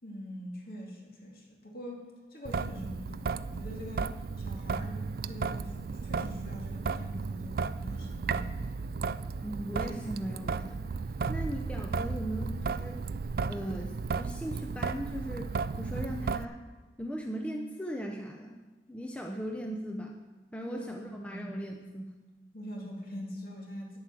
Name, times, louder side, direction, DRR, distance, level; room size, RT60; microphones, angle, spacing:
voice 1, 0.0-5.0 5.3-5.7 6.0-8.8 20.7-21.5 22.5-24.0, equal, 55° left, -1 dB, 2.5 m, -43 dB
Traffic noise roadway noise / Drip / Trickle dribble, 2.5-16.5, right 4 dB, 55° right, 0.3 m, -34 dB
voice 2, 9.4-10.8 11.3-13.0 13.5-16.6 17.0-18.6 18.9-20.2 20.5-22.1, equal, 5° left, 2 dB, 0.6 m, -38 dB
9.4 x 7.9 x 7.6 m, 1.3 s
head